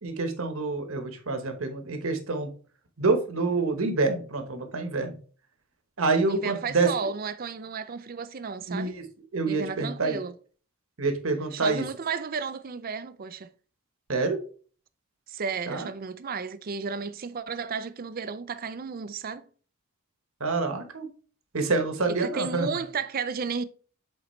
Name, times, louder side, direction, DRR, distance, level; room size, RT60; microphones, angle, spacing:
voice 1, 0.0-2.5 3.0-5.2 6.0-6.9 8.7-9.0 9.3-10.2 11.0-11.8 14.1-14.4 15.7-15.9 20.4-21.1 21.5-22.7, right 3 dB, 65° right, 1.2 m, -27 dB
voice 2, 6.3-9.0 9.5-10.3 11.5-13.5 15.3-19.5 22.1-23.6, right 5 dB, 40° right, 0.4 m, -33 dB
7.9 x 4.0 x 3.2 m
head